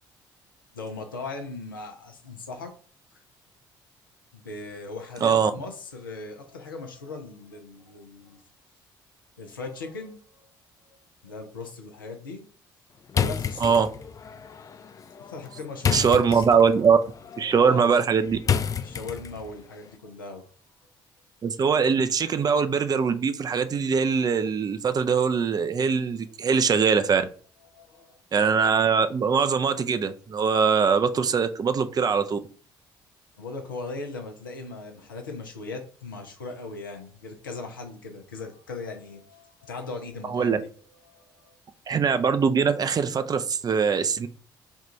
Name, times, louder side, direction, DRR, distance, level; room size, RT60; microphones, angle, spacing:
voice 1, 0.7-2.7 3.1-3.2 4.3-8.4 9.4-10.2 11.2-12.4 13.2-13.8 15.2-16.4 17.6-17.9 18.8-20.5 27.7-28.2 33.4-40.6 41.0-41.6, left 3 dB, 85° left, 3 dB, 0.7 m, -39 dB
voice 2, 5.2-5.5 13.6-13.9 15.9-17.0 17.4-18.4 21.4-27.3 28.3-32.4 40.3-40.6 41.9-44.3, right 6 dB, 35° right, 10 dB, 0.5 m, -22 dB
sound 1, 13.1-19.6, left 7 dB, 30° left, 0.4 m, -30 dB
3.6 x 2.4 x 4.3 m, 0.42 s
figure-of-eight pair, 50°, 11 cm